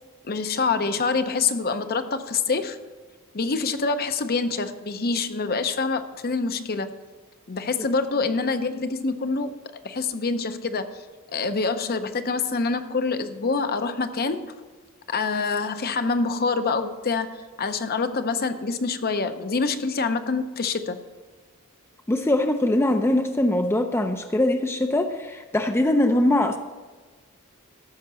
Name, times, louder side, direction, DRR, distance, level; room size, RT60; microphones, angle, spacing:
voice 1, 0.2-2.8 3.3-6.9 7.5-9.5 9.8-11.0 11.3-14.5 15.1-17.3 17.6-21.0, left 4 dB, 45° left, 9 dB, 0.7 m, -26 dB
voice 2, 22.1-26.6, left 1 dB, 10° left, 5 dB, 0.5 m, -22 dB
14.0 x 5.7 x 6.2 m, 1.3 s
head